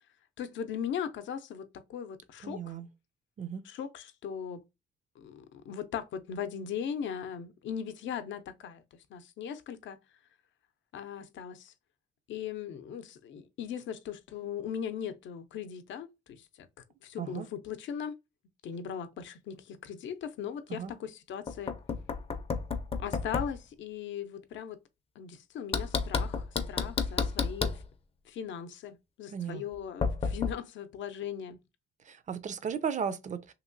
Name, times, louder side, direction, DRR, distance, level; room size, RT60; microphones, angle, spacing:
voice 1, 0.4-2.7 3.6-4.6 5.2-8.8 9.1-10.0 10.9-11.7 12.3-16.7 17.0-18.2 18.6-21.8 23.0-24.8 25.2-27.8 28.3-31.6, left 8 dB, 70° left, 0.6 m, -39 dB
voice 2, 2.4-2.9 3.4-3.6 17.2-17.5 20.7-20.9 29.3-29.6 32.1-33.5, right 7 dB, 40° right, 0.5 m, -35 dB
Knock, 21.5-23.6 25.7-27.8 30.0-30.5, left 4 dB, 30° left, 0.5 m, -31 dB
2.9 x 2.8 x 2.6 m
cardioid pair, 90°, 20 cm